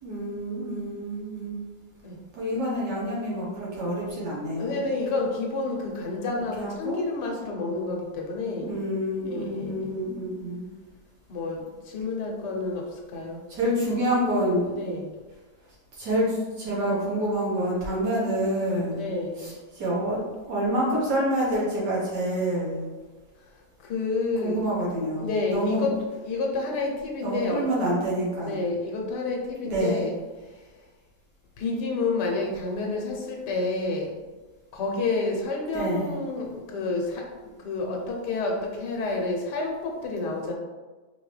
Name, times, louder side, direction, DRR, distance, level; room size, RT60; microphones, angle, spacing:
voice 1, 0.0-1.6 2.3-4.8 6.3-7.0 8.6-10.6 13.5-14.7 15.9-19.0 19.4-20.2 20.4-22.8 24.4-25.9 27.2-28.6 29.6-30.1 35.7-36.1, right 1 dB, 85° right, -5 dB, 1.9 m, -27 dB
voice 2, 4.6-8.8 9.3-10.0 11.3-13.4 14.7-15.1 18.8-19.6 23.8-24.7 25.2-25.9 26.2-27.7 28.4-30.1 31.6-34.2 34.7-37.3 37.6-40.5, left 3 dB, 85° left, 0 dB, 1.4 m, -29 dB
4.7 x 2.9 x 3.2 m, 1.3 s
omnidirectional pair, 1.8 m